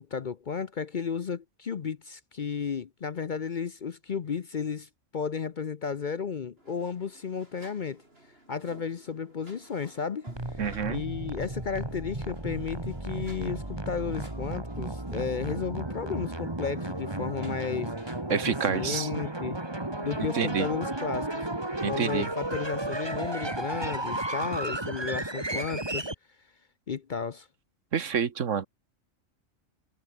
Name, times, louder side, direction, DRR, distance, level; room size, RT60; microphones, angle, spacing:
voice 1, 0.0-8.0 8.5-10.6 10.9-19.6 20.0-21.5 21.9-26.1 26.9-27.5, left 6 dB, 45° left, 0.7 m, -33 dB
sound 1, 6.6-19.2, right 1 dB, 50° right, 7.1 m, -56 dB
sound 2, 10.3-26.1, right 1 dB, 20° right, 2.4 m, -34 dB
voice 2, 10.6-11.0 18.3-19.1 20.2-20.7 21.8-22.3 27.9-28.7, right 7 dB, 75° right, 1.6 m, -28 dB
omnidirectional pair, 1.3 m